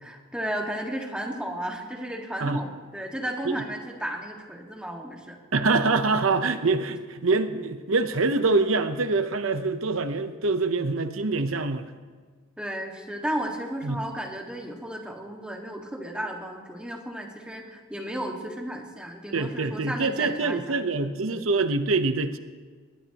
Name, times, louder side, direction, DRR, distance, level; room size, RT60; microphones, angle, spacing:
voice 1, 0.0-5.4 12.6-21.4, right 1 dB, 5° right, 0 dB, 1.7 m, -34 dB
voice 2, 5.5-11.9 13.8-14.0 19.3-22.4, right 3 dB, 85° right, 10 dB, 0.8 m, -25 dB
21.5 x 18.5 x 3.0 m, 1.5 s
head